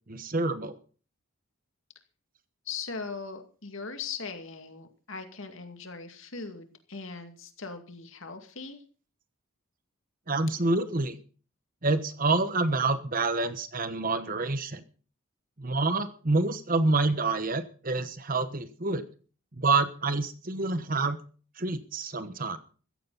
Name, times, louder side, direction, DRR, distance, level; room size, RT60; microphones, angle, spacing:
voice 1, 0.1-0.8 10.3-11.2 11.8-14.8 15.6-19.1 19.6-21.2 21.6-22.6, right 3 dB, 40° right, 11 dB, 1.2 m, -27 dB
voice 2, 2.7-8.8, left 5 dB, 65° left, 6 dB, 2.4 m, -39 dB
15.5 x 15.0 x 4.1 m, 0.39 s
head